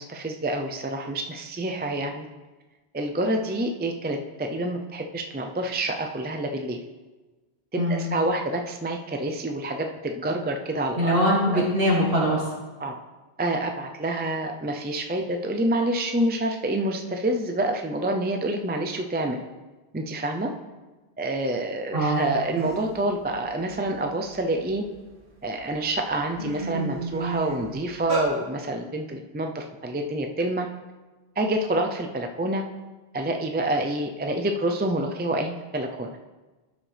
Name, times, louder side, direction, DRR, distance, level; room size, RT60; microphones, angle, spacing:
voice 1, 0.0-2.3 2.9-6.8 7.7-11.2 11.5-11.6 12.8-13.0 13.4-19.4 19.9-20.5 21.2-24.8 25.4-30.7 31.4-32.6 33.1-36.2, right 1 dB, 15° right, 4 dB, 0.3 m, -27 dB
voice 2, 7.8-8.1 11.0-12.5 21.9-22.3, equal, 60° right, -5 dB, 2.6 m, -22 dB
sound 1, 22.2-22.3 22.6-23.0 23.4-25.0 25.6-25.7 26.1-28.3, right 3 dB, 75° right, 2.0 m, -32 dB
12.5 x 6.3 x 3.4 m, 1.2 s
omnidirectional pair, 1.1 m